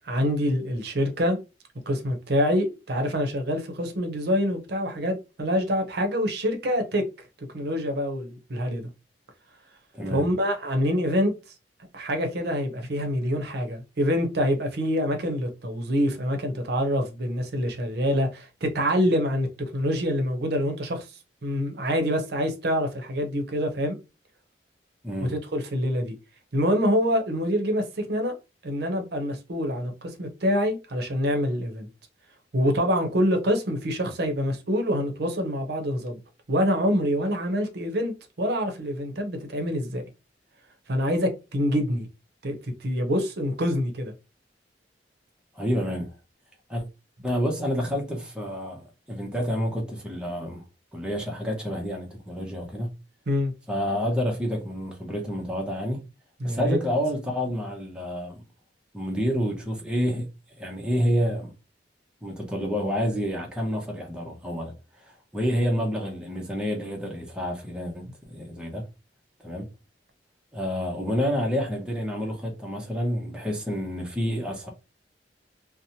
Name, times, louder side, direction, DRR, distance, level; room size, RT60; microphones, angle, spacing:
voice 1, 0.0-1.4 1.9-7.0 7.5-8.9 10.1-11.3 11.9-21.1 21.4-24.0 25.2-26.2 26.5-28.3 28.6-31.9 32.5-36.2 36.5-40.0 40.9-42.1 42.4-44.1 53.3-53.5 56.4-56.8, equal, 60° right, 0.7 m, -26 dB
voice 2, 9.9-10.3 25.0-25.3 45.5-46.1 46.7-46.8 47.2-50.6 50.9-52.9 53.7-56.0 56.4-58.4 58.9-60.3 60.6-61.5 62.2-64.7 65.0-68.9 69.4-69.7 70.5-74.7, equal, 5° right, 0.6 m, -28 dB
2.8 x 2.0 x 2.7 m
head